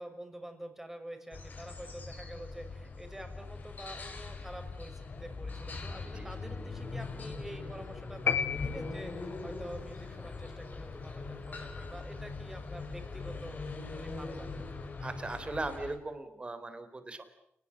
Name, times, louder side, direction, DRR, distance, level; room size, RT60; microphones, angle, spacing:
voice 1, 0.0-14.6, right 1 dB, 10° right, 6 dB, 5.9 m, -47 dB
sound 1, 1.3-16.0, left 3 dB, 45° left, 5.1 m, -41 dB
sound 2, 8.3-9.5, left 7 dB, 70° left, 1.7 m, -32 dB
voice 2, 15.0-17.2, right 2 dB, 25° right, 10 dB, 3.9 m, -38 dB
29.0 x 20.0 x 10.0 m, 0.76 s
cardioid pair, 100°, 4 cm